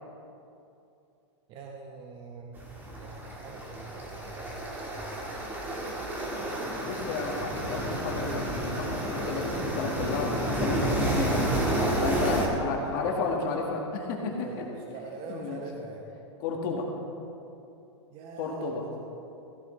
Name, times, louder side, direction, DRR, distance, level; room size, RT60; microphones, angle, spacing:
voice 1, 1.5-2.6 2.9-5.4 7.5-7.8 12.0-13.4 14.3-16.0 18.1-19.0, right 4 dB, 35° right, 0 dB, 1.1 m, -43 dB
sound 1, 2.6-12.5, right 1 dB, 10° right, 1.6 m, -30 dB
voice 2, 6.8-11.5 12.0-14.5 15.3-15.6 16.4-16.9 18.4-18.8, left 4 dB, 45° left, 0 dB, 1.8 m, -32 dB
15.0 x 13.0 x 3.3 m, 2.7 s
hypercardioid pair, 145°, 16 cm